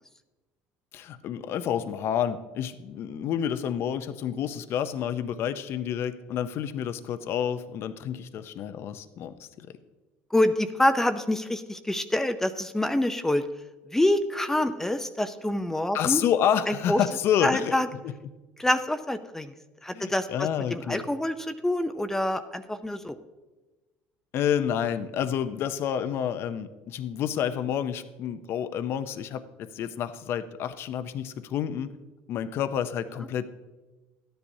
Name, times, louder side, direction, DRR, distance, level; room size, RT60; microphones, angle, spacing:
voice 1, 0.9-9.7 15.9-17.7 19.9-21.0 24.3-31.9 32.3-33.5, left 9 dB, 60° left, 12 dB, 0.6 m, -29 dB
voice 2, 10.3-13.4 13.9-16.2 16.7-17.0 17.4-17.9 18.6-19.5 19.8-23.2, left 1 dB, 10° left, 9 dB, 0.5 m, -26 dB
13.0 x 10.0 x 2.7 m, 1.2 s
supercardioid pair, 90°, 5 cm